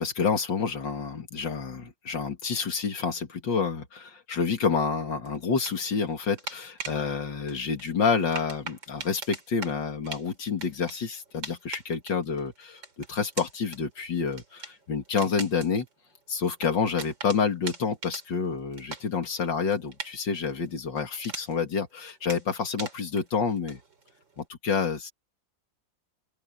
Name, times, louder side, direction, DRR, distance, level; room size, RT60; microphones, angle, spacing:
voice 1, 0.0-15.9 16.3-23.8 24.4-25.1, left 5 dB, 75° left, 2.9 m, -28 dB
sound 1, 5.2-7.0 7.5-21.8 22.1-24.4, right 4 dB, 90° right, 4.7 m, -42 dB
open air
omnidirectional pair, 2.0 m